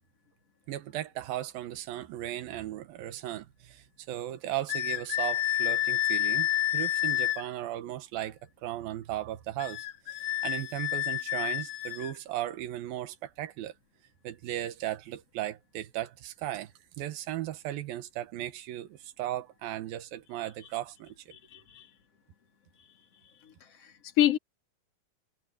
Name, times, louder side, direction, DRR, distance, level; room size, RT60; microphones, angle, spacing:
voice 1, 0.7-13.7 14.2-16.7 17.0-21.1, right 13 dB, 90° right, 3.1 m, -36 dB
sound 1, 4.7-7.5 9.6-12.2, left 13 dB, 65° left, 2.8 m, -29 dB
voice 2, 21.3-21.9 22.8-22.9 23.2-23.3 23.6-24.4, left 12 dB, 45° left, 3.7 m, -29 dB
omnidirectional pair, 4.1 m